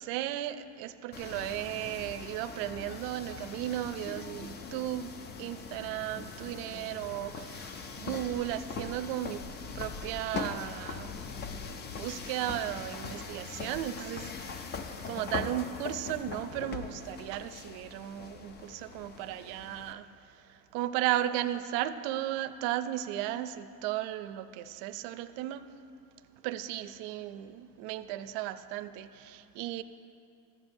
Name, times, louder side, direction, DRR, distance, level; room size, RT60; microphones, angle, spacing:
voice 1, 0.0-5.1 5.4-9.5 9.7-11.1 11.7-14.6 15.1-20.1 20.7-25.6 26.4-29.8, right 13 dB, 75° right, 12 dB, 0.5 m, -35 dB
sound 1, 1.1-19.9, left 5 dB, 25° left, 0.4 m, -41 dB
13.5 x 8.9 x 2.6 m, 2.7 s
cardioid pair, 130°, 42 cm